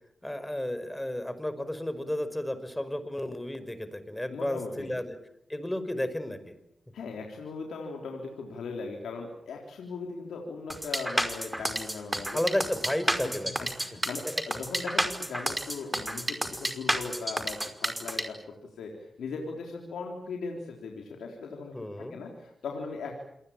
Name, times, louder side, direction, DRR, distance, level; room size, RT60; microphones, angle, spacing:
voice 1, 0.2-5.2 5.5-6.5 12.3-13.7 21.7-22.2, left 1 dB, 10° left, 12 dB, 5.5 m, -32 dB
voice 2, 4.3-4.9 6.9-12.4 13.2-13.3 13.8-23.2, left 4 dB, 90° left, 1 dB, 3.8 m, -39 dB
sound 1, 10.7-18.2, right 1 dB, 10° right, 5.2 m, -30 dB
27.0 x 21.0 x 8.8 m, 0.75 s
supercardioid pair, 45°, 0 cm